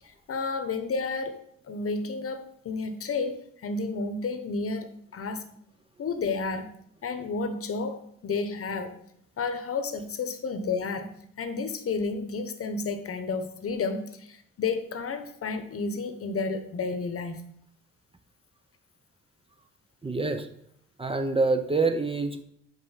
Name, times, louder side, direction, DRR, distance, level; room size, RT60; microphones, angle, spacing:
voice 1, 0.3-1.4 1.7-5.5 6.0-6.7 7.0-9.0 9.4-11.1 11.4-17.4, left 4 dB, 50° left, 9 dB, 1.0 m, -31 dB
voice 2, 20.0-20.5 21.0-22.4, right 3 dB, 20° right, 7 dB, 0.7 m, -26 dB
5.3 x 5.3 x 5.7 m, 0.70 s
cardioid pair, 90°, 30 cm